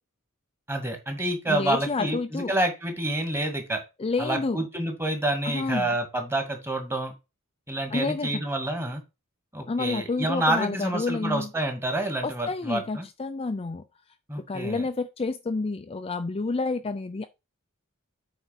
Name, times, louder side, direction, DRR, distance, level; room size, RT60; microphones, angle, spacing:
voice 1, 0.7-3.8 4.2-7.1 7.7-9.0 9.5-13.1 14.3-14.8, right 1 dB, 10° right, 2.1 m, -28 dB
voice 2, 1.5-2.5 4.0-4.6 5.4-5.9 7.9-8.4 9.7-11.5 12.2-13.8 14.4-17.3, left 3 dB, 25° left, 0.4 m, -29 dB
8.2 x 4.0 x 5.7 m
head